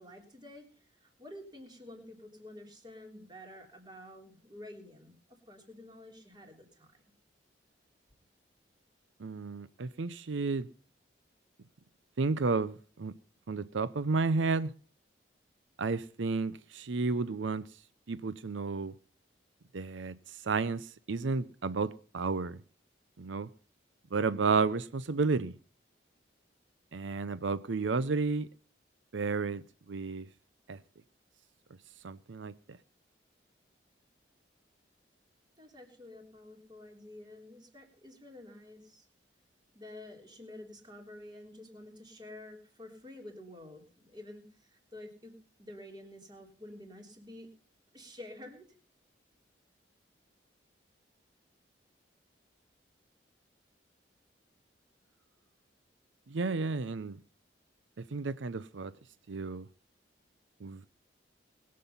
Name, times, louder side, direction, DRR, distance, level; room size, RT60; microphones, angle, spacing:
voice 1, 0.0-7.0 35.6-39.1 39.7-47.5 47.9-48.7, left 1 dB, 25° right, 3.4 m, -50 dB
voice 2, 9.2-10.7 12.2-13.1 13.5-14.7 15.8-17.6 18.1-18.9 19.7-20.1 20.4-22.6 23.2-23.5 24.1-25.5 26.9-28.5 29.1-29.6 29.9-30.3 30.7-30.8 32.0-32.5 56.3-57.2 58.1-58.9 59.3-59.7 60.6-60.9, right 4 dB, 90° right, 0.6 m, -32 dB
21.0 x 7.6 x 5.5 m
head